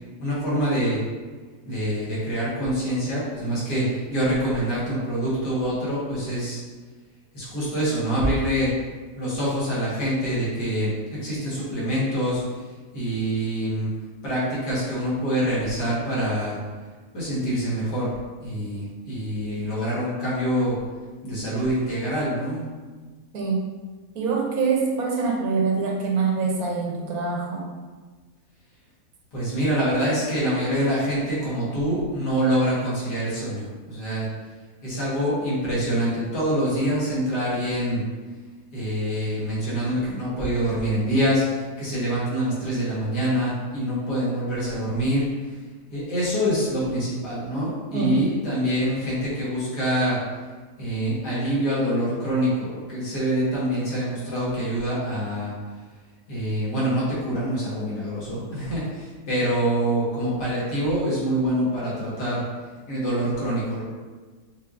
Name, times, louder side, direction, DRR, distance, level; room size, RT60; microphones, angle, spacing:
voice 1, 0.2-1.0 1.7-6.6 7.3-8.7 9.2-11.0 11.2-12.4 12.9-13.9 14.2-16.6 17.1-18.1 18.4-20.7 21.2-22.6 29.3-34.3 34.8-38.0 38.7-41.4 41.8-45.3 45.9-50.2 50.8-55.5 56.3-58.8 59.3-62.4 62.9-63.8, equal, 85° left, -8 dB, 2.3 m, -25 dB
voice 2, 23.3-23.7 24.1-27.7 47.9-48.2, right 4 dB, 70° right, 0 dB, 1.2 m, -24 dB
5.7 x 3.5 x 2.6 m, 1.4 s
omnidirectional pair, 1.7 m